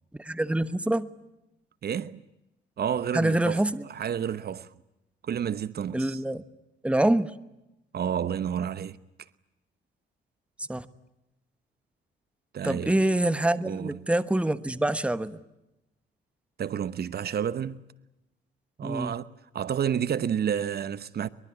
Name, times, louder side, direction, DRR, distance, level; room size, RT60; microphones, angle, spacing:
voice 1, 0.2-1.1 3.1-3.9 5.9-6.4 6.8-7.3 10.6-10.9 12.6-15.4 18.8-19.1, right 1 dB, 5° right, 1.2 m, -25 dB
voice 2, 1.8-2.2 2.8-3.6 3.9-4.7 5.2-6.2 7.9-9.0 12.5-13.0 13.6-14.0 16.6-17.8 18.8-19.3 19.5-21.3, right 8 dB, 55° right, 1.0 m, -30 dB
23.5 x 22.5 x 9.8 m
cardioid pair, 90°, 20 cm